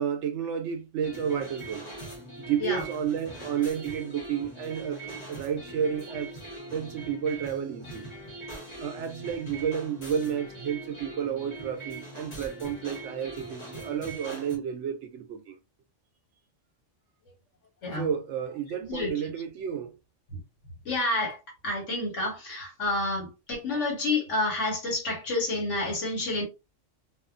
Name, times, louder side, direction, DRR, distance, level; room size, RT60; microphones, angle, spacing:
voice 1, 0.0-1.9 2.4-6.4 6.7-8.1 8.8-15.6 17.9-20.0, right 8 dB, 70° right, 0.9 m, -31 dB
sound 1, 1.0-14.6, right 2 dB, 35° left, 1.0 m, -42 dB
voice 2, 18.8-19.1 20.3-20.4 20.8-21.4 21.6-26.4, left 2 dB, 75° left, 1.5 m, -29 dB
2.6 x 2.4 x 2.5 m
omnidirectional pair, 1.3 m